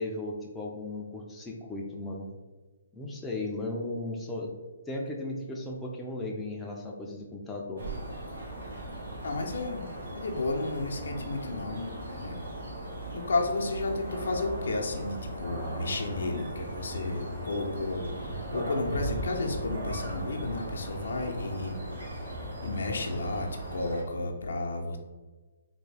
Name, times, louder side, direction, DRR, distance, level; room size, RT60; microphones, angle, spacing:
voice 1, 0.0-2.3 2.9-4.5 4.9-7.9, left 2 dB, 10° left, -2 dB, 0.4 m, -36 dB
sound 1, 7.8-24.0, right 1 dB, 80° right, 1.3 m, -38 dB
voice 2, 9.2-12.5 13.1-25.0, left 2 dB, 80° left, 2 dB, 0.6 m, -33 dB
3.5 x 2.2 x 3.3 m, 1.3 s
hypercardioid pair, 155°, 0 cm